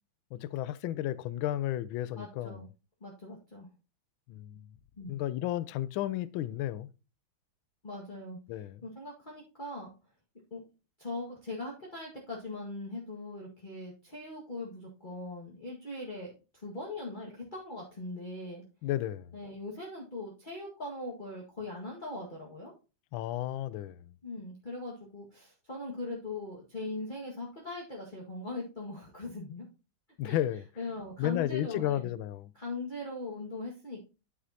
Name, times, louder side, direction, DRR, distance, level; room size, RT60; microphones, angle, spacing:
voice 1, 0.3-2.6 4.3-4.6 5.1-6.9 8.5-8.8 18.8-19.4 23.1-24.1 30.2-30.6 31.2-32.5, left 13 dB, 80° left, 1.4 m, -33 dB
voice 2, 2.1-2.7 3.0-3.7 5.0-5.2 7.8-8.4 8.8-9.9 10.5-10.6 11.0-18.6 19.3-22.7 24.2-29.7 30.2-30.4 30.8-32.1 32.5-34.1, left 2 dB, 25° left, 1.8 m, -40 dB
10.0 x 7.3 x 2.8 m
omnidirectional pair, 2.3 m